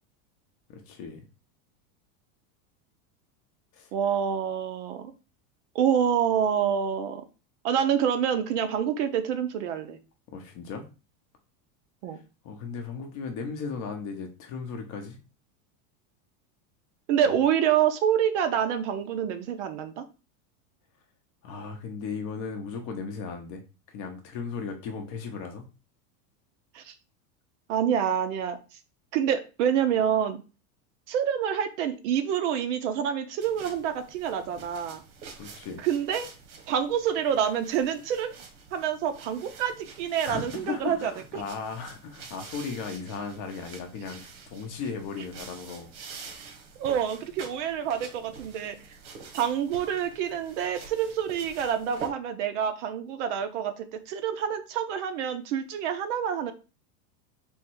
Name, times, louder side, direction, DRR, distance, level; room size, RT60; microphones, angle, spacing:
voice 1, 0.7-1.2 3.7-3.9 10.3-10.9 12.4-15.2 17.2-17.3 21.4-23.6 23.9-25.6 35.3-35.8 40.2-44.2 44.5-45.9, left 5 dB, 30° left, 4 dB, 0.7 m, -36 dB
voice 2, 3.9-5.1 5.7-7.2 7.6-10.0 12.0-12.2 17.1-20.0 26.7-26.9 27.7-28.6 29.1-30.4 31.1-35.0 35.8-36.3 36.7-38.3 38.7-41.4 46.8-48.8 49.3-56.5, right 8 dB, 55° right, 9 dB, 0.7 m, -27 dB
sound 1, 33.4-52.1, right 5 dB, 85° right, 1.4 m, -47 dB
3.6 x 3.1 x 4.5 m, 0.32 s
supercardioid pair, 170°, 44 cm